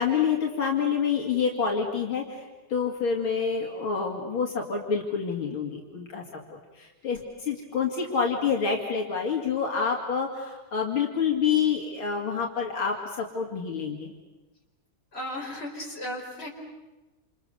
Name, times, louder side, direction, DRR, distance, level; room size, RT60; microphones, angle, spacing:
voice 1, 0.0-14.1, left 6 dB, 70° left, 0 dB, 3.3 m, -28 dB
voice 2, 15.1-16.5, left 1 dB, 25° left, 0 dB, 5.0 m, -35 dB
28.5 x 28.5 x 6.9 m, 1.1 s
omnidirectional pair, 2.4 m